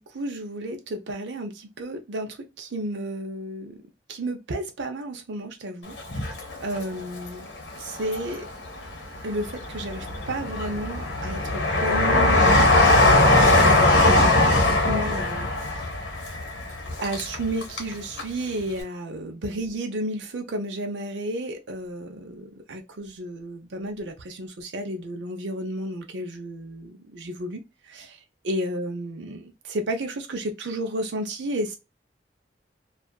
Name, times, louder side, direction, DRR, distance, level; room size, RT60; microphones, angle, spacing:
voice 1, 0.0-3.8 4.1-5.9 6.6-7.5 7.7-8.5 9.2-12.7 13.7-15.9 17.0-27.6 27.9-28.2 28.4-31.8, right 1 dB, 80° right, 0.6 m, -32 dB
Train, 6.0-7.2 7.7-8.6 9.2-17.9 18.2-18.3, left 2 dB, 90° left, 1.1 m, -20 dB
2.6 x 2.4 x 2.2 m
head